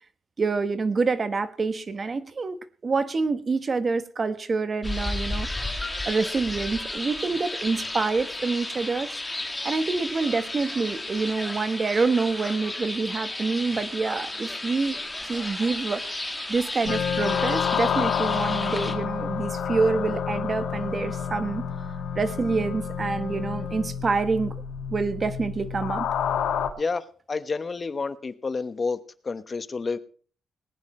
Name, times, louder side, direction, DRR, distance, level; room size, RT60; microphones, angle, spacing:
voice 1, 0.4-5.7 6.1-9.2 9.6-16.0 16.5-21.6 22.1-24.5 24.9-26.1, right 4 dB, 35° right, 11 dB, 1.3 m, -27 dB
sound 1, 4.8-18.9, left 2 dB, 10° left, 1.9 m, -33 dB
Wind instrument woodwind instrument, 16.8-24.0, left 7 dB, 65° left, 0.9 m, -32 dB
sound 2, 16.9-26.7, left 7 dB, 85° left, 1.8 m, -31 dB
voice 2, 26.8-29.0 29.2-30.0, left 4 dB, 30° left, 12 dB, 1.0 m, -29 dB
20.0 x 9.7 x 4.3 m, 0.42 s
cardioid pair, 130°, 0 cm